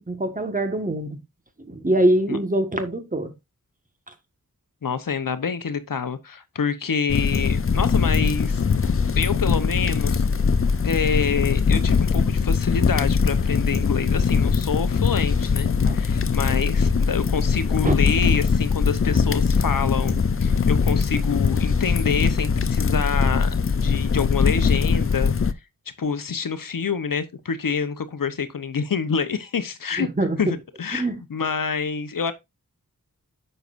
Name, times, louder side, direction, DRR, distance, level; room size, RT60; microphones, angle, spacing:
voice 1, 0.1-1.2 1.6-3.3 15.9-16.0 17.8-17.9 30.0-30.4 30.9-31.2, right 1 dB, 25° right, 1.5 m, -23 dB
voice 2, 4.8-8.6 9.2-10.2 10.8-20.1 20.4-25.3 26.0-30.1 30.4-32.3, left 6 dB, 70° left, 1.0 m, -27 dB
sound 1, 7.1-25.5, left 5 dB, 40° left, 0.6 m, -21 dB
9.4 x 6.7 x 2.6 m
wide cardioid pair, 80°, 34 cm